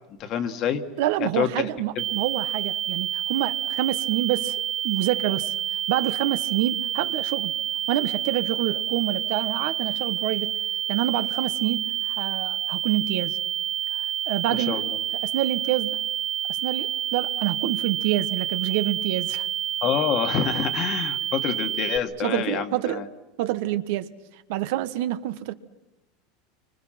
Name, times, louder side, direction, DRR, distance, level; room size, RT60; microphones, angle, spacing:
voice 1, 0.2-0.8 1.2-1.7 1.9-2.0 14.5-15.0 19.8-23.1, left 8 dB, 40° left, 8 dB, 1.8 m, -27 dB
voice 2, 1.0-4.6 4.8-5.5 5.9-7.5 7.9-10.5 10.9-13.4 14.3-14.8 15.2-16.0 16.5-19.5 22.2-23.0 23.4-24.1 24.5-25.5, right 14 dB, 65° right, 12 dB, 1.2 m, -27 dB
sound 1, 2.0-22.0, right 11 dB, 40° right, 0.8 m, -28 dB
29.5 x 25.0 x 6.0 m, 0.97 s
supercardioid pair, 150°, 0 cm